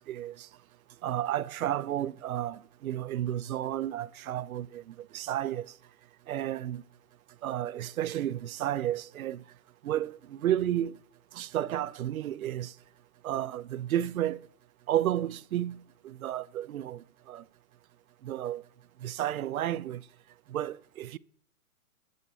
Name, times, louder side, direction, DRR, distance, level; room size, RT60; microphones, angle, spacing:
voice 1, 0.1-0.5 1.0-5.7 6.3-6.8 7.4-9.4 9.8-11.0 11.3-12.7 13.2-14.5 14.9-17.4 18.2-18.6 19.0-20.0 20.5-21.2, right 12 dB, 70° right, 0.6 m, -32 dB
19.5 x 8.2 x 4.1 m
hypercardioid pair, 140°, 45 cm